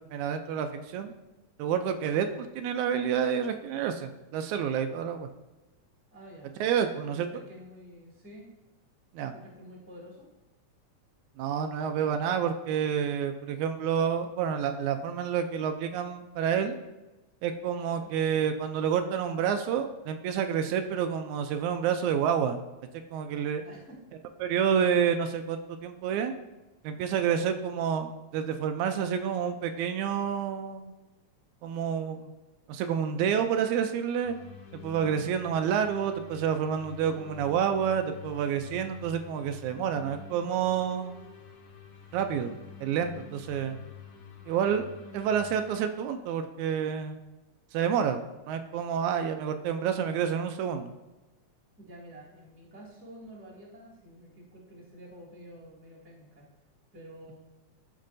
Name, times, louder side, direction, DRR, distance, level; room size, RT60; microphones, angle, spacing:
voice 1, 0.1-1.1 1.6-5.3 6.6-7.3 9.1-9.3 11.4-16.8 17.4-22.6 23.1-23.6 24.4-26.3 26.8-30.9 31.6-32.3 32.7-34.4 34.7-41.2 42.1-42.5 42.8-43.8 44.5-44.9 45.1-47.2 47.7-50.9, right 8 dB, 85° right, 7 dB, 1.9 m, -29 dB
voice 2, 6.1-6.5 6.9-8.5 9.3-10.3 17.9-18.1 23.6-24.0 51.8-56.5 56.9-57.4, equal, 5° right, -4 dB, 1.6 m, -49 dB
sound 1, 34.2-45.8, left 7 dB, 80° left, 2.5 m, -48 dB
13.0 x 5.3 x 2.6 m, 1.1 s
omnidirectional pair, 3.4 m